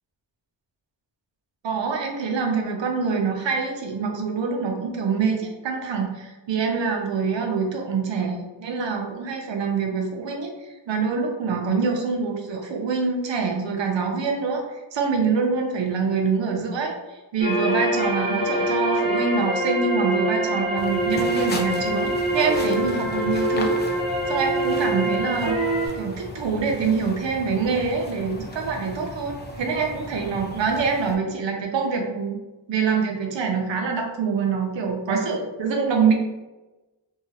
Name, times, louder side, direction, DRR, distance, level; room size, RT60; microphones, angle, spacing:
voice 1, 1.6-23.7 24.3-25.5 25.9-32.4 32.7-36.1, right 5 dB, 85° right, 2 dB, 0.6 m, -25 dB
sound 1, 17.4-25.9, right 1 dB, 15° right, 0.8 m, -24 dB
sound 2, 20.8-31.2, left 1 dB, 25° left, 0.4 m, -37 dB
2.8 x 2.3 x 2.7 m, 1.1 s
wide cardioid pair, 60°, 43 cm